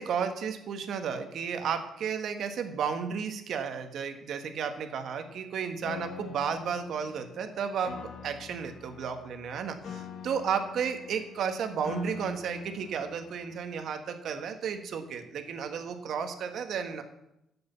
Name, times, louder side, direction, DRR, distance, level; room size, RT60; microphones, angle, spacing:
voice 1, 0.0-17.0, right 7 dB, 70° right, 7 dB, 1.5 m, -33 dB
Piano, 5.8-13.8, left 6 dB, 70° left, 1.4 m, -45 dB
11.0 x 7.8 x 7.0 m, 0.83 s
cardioid pair, 90°, 0 cm